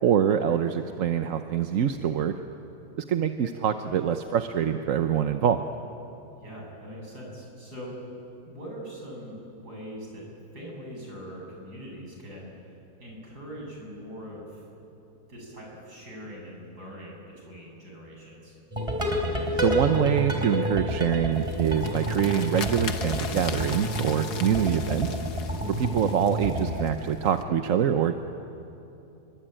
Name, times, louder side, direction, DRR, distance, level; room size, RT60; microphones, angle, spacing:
voice 1, 0.0-2.3 3.0-5.6 19.6-25.2 25.7-28.2, right 9 dB, 60° right, 7 dB, 1.2 m, -25 dB
voice 2, 6.4-8.0 8.5-12.5 13.0-14.8 15.3-18.5, equal, 90° right, -2 dB, 8.1 m, -42 dB
sound 1, 18.7-26.9, equal, 20° right, 3.8 m, -29 dB
sound 2, 21.3-27.4, left 6 dB, 80° left, 1.8 m, -39 dB
28.0 x 24.0 x 8.9 m, 2.8 s
omnidirectional pair, 1.7 m